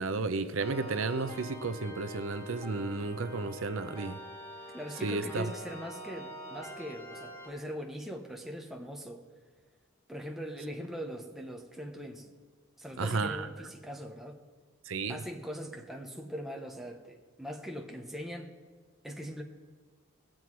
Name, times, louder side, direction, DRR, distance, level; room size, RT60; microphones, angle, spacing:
voice 1, 0.0-4.2 5.0-5.4 13.0-13.5 14.9-15.2, right 3 dB, 75° right, 11 dB, 0.6 m, -33 dB
sound 1, 0.6-7.5, equal, 15° left, 2.5 m, -45 dB
voice 2, 4.7-9.2 10.1-12.3 12.8-14.4 15.1-18.5 19.0-19.4, equal, ahead, 1 dB, 0.9 m, -41 dB
19.5 x 7.6 x 4.7 m, 1.5 s
head